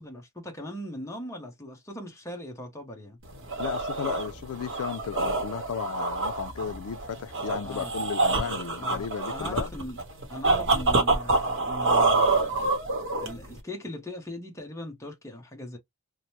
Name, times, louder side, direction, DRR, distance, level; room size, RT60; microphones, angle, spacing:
voice 1, 0.0-3.2 7.6-7.9 8.2-8.3 8.8-10.0 10.3-12.7 13.2-15.8, left 1 dB, 15° left, 0.7 m, -39 dB
sound 1, 3.2-13.6, right 3 dB, 55° right, 0.9 m, -27 dB
voice 2, 3.6-9.7, left 7 dB, 75° left, 0.4 m, -34 dB
3.0 x 2.1 x 2.9 m
head